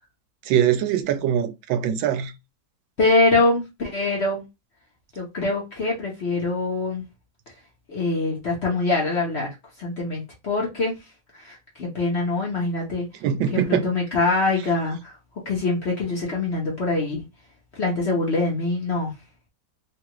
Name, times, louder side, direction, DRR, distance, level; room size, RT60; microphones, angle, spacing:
voice 1, 0.5-2.3 13.2-13.9, right 9 dB, 90° right, 1.3 m, -22 dB
voice 2, 3.0-4.4 5.2-7.0 7.9-10.9 11.3-13.1 13.5-15.2 15.5-17.2 17.7-19.1, left 3 dB, 45° left, 0.9 m, -24 dB
3.5 x 2.3 x 2.9 m
omnidirectional pair, 2.0 m